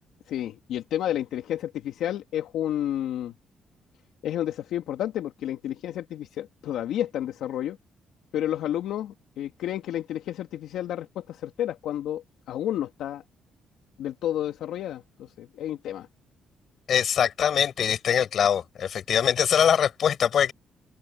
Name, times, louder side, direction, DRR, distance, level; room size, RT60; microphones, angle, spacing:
voice 1, 0.3-3.3 4.2-7.8 8.3-13.2 14.0-16.1, left 11 dB, 80° left, 2.9 m, -31 dB
voice 2, 16.9-20.5, left 8 dB, 60° left, 7.8 m, -23 dB
open air
cardioid pair, 90°, 0 cm